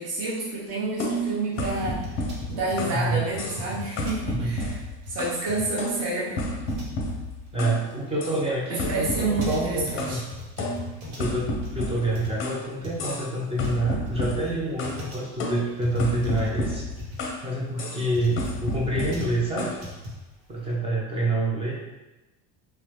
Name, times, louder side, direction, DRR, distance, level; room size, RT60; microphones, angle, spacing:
voice 1, 0.0-2.0 2.5-4.7 5.1-6.4 8.7-10.2, right 2 dB, 45° right, -6 dB, 0.9 m, -29 dB
sound 1, 1.0-3.0 3.4-3.7 4.0-5.4 5.8-7.8 8.2-8.4 8.8-10.2 10.6-12.6 13.0-13.3 13.6-15.0 15.4-17.4 17.8-18.0 18.4-19.8, left 1 dB, 35° left, 0.5 m, -31 dB
sound 2, 1.5-20.7, left 1 dB, 80° right, 1.0 m, -40 dB
voice 2, 2.9-3.3 4.3-4.6 7.5-10.2 11.1-16.9 17.4-19.8 20.5-21.7, right 2 dB, 15° right, -4 dB, 0.4 m, -27 dB
3.2 x 2.0 x 2.9 m, 1.1 s
cardioid pair, 145°, 34 cm